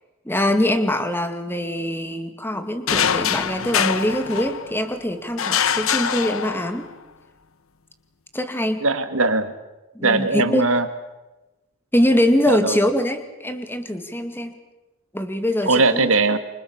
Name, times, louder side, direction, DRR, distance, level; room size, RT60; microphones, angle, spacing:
voice 1, 0.3-6.9 8.3-8.8 9.9-10.6 11.9-14.5 15.1-16.1, left 1 dB, 10° left, 8 dB, 2.4 m, -23 dB
sound 1, 2.9-4.9 5.4-6.9, left 8 dB, 80° left, 1.1 m, -23 dB
voice 2, 8.8-9.5 10.0-10.9 12.5-12.8 15.7-16.4, right 3 dB, 75° right, 10 dB, 2.3 m, -20 dB
28.5 x 26.5 x 7.3 m, 1.0 s
head